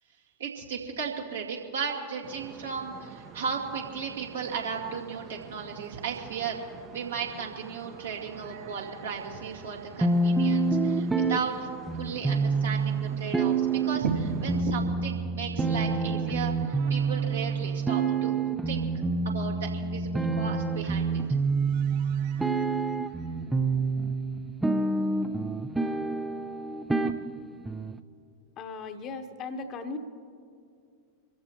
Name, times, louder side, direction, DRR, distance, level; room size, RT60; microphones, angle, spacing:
voice 1, 0.4-6.6 6.9-11.7 12.0-18.9 19.2-21.2, right 6 dB, 70° right, -2 dB, 2.3 m, -35 dB
sound 1, 2.2-14.6, right 7 dB, 30° right, 0.9 m, -48 dB
sound 2, 7.4-11.7 12.0-12.1 15.6-18.8 20.8-24.2, right 7 dB, 50° right, 3.2 m, -55 dB
sound 3, 10.0-28.0, right 3 dB, 5° right, 0.6 m, -28 dB
voice 2, 28.6-30.0, left 4 dB, 35° left, 7 dB, 1.1 m, -37 dB
25.5 x 14.5 x 3.0 m, 2.4 s
figure-of-eight pair, 90°, 0 cm